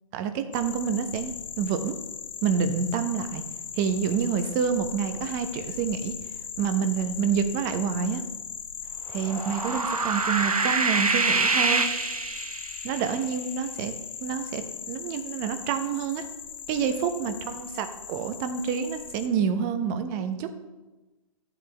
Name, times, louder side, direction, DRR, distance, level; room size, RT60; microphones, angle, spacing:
voice 1, 0.1-2.0 2.4-3.4 3.7-6.1 6.6-8.2 9.1-11.8 12.8-13.9 14.2-16.3 16.7-20.5, right 7 dB, 30° right, 8 dB, 0.9 m, -28 dB
sound 1, 0.5-19.3, left 7 dB, 60° left, 1.0 m, -39 dB
sound 2, 9.2-12.9, right 3 dB, 90° right, 1.0 m, -25 dB
12.5 x 7.4 x 3.5 m, 1.1 s
figure-of-eight pair, 125°, 18 cm